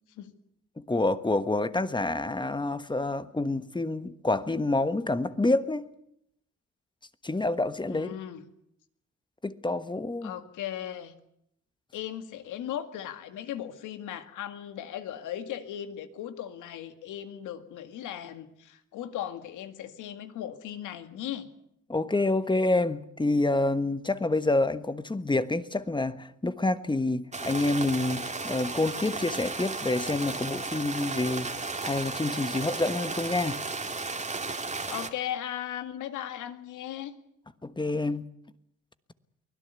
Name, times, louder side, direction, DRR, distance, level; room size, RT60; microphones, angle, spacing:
voice 1, 0.9-5.8 7.2-8.1 9.4-10.3 21.9-31.5 31.8-33.6 37.6-38.3, left 2 dB, 15° left, 1.3 m, -27 dB
voice 2, 7.9-8.4 10.2-11.1 11.9-21.5 34.9-37.1, left 10 dB, 90° left, 2.1 m, -37 dB
sound 1, 27.3-35.1, right 3 dB, 25° right, 2.2 m, -34 dB
24.0 x 17.0 x 8.2 m
cardioid pair, 90°, 30 cm